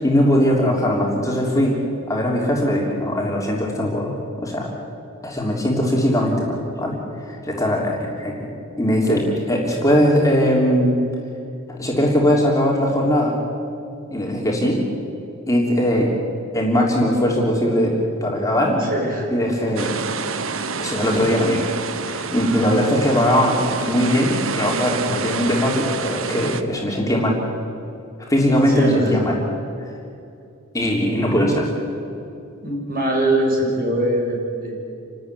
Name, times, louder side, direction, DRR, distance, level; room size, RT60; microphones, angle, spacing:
voice 1, 0.0-1.8 2.1-4.7 5.2-7.0 7.2-8.5 8.8-10.9 11.7-13.4 14.1-14.8 15.5-16.1 16.5-18.8 19.3-20.0 20.8-21.7 22.1-27.4 28.3-29.4 30.7-31.6, equal, 15° left, -2 dB, 3.3 m, -20 dB
voice 2, 18.8-19.3 19.8-20.0 28.7-29.2 31.3-31.5 32.6-34.9, right 1 dB, 45° right, -1 dB, 6.5 m, -22 dB
sound 1, 19.8-26.6, right 5 dB, 70° right, 1.1 m, -28 dB
28.5 x 13.0 x 9.8 m, 2.6 s
head